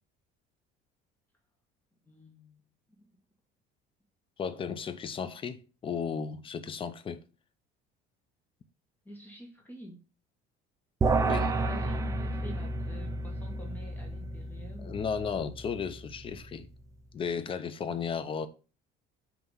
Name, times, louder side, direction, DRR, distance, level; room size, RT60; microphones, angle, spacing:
voice 1, 2.0-2.6 2.9-3.1 9.0-10.0 11.6-15.1, equal, 10° left, 1.4 m, -47 dB
voice 2, 4.4-7.2 11.3-11.5 14.8-16.7 17.1-18.5, left 6 dB, 30° left, 0.6 m, -34 dB
sound 1, 11.0-16.5, right 2 dB, 15° right, 0.5 m, -31 dB
5.7 x 3.0 x 5.5 m
cardioid pair, 135°, 19 cm